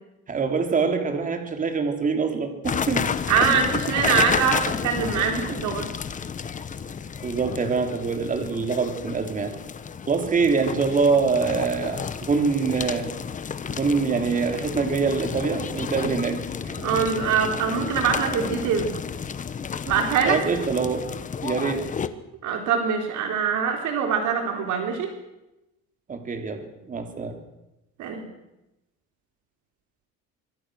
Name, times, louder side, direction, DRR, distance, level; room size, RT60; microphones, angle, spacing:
voice 1, 0.3-3.1 3.4-3.6 7.2-9.5 10.1-13.1 13.7-16.8 20.2-21.1 21.4-21.9 26.1-27.4, right 5 dB, 25° right, 6 dB, 3.2 m, -25 dB
sound 1, 2.6-22.1, left 6 dB, 20° left, 1.1 m, -31 dB
voice 2, 3.3-5.9 16.8-18.9 19.9-20.4 22.4-25.1 28.0-28.3, right 6 dB, 55° right, 4 dB, 4.0 m, -23 dB
25.0 x 22.0 x 6.4 m, 0.93 s
cardioid pair, 155°, 35 cm